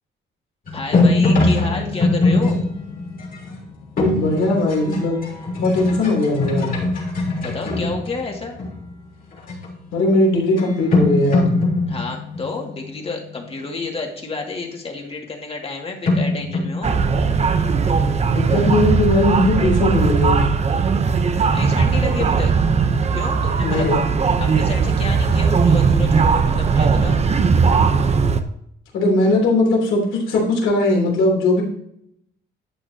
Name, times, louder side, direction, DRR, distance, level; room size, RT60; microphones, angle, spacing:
sound 1, 0.7-8.9 9.4-9.7 10.6-10.7 10.9-13.4 16.1-17.9, left 2 dB, 45° left, 3.6 m, -22 dB
voice 1, 0.7-2.6 7.4-8.6 11.9-17.0 21.5-22.6 23.1-23.9 24.4-27.2, left 3 dB, 30° left, 1 dB, 2.3 m, -30 dB
voice 2, 4.2-5.2 5.6-6.7 9.9-11.5 18.3-20.4 23.6-24.0 28.9-31.6, left 2 dB, 80° left, -1 dB, 3.4 m, -19 dB
sound 2, 16.8-28.4, right 5 dB, 35° right, 0.8 m, -18 dB
11.0 x 8.8 x 2.9 m, 0.73 s
cardioid pair, 110°, 20 cm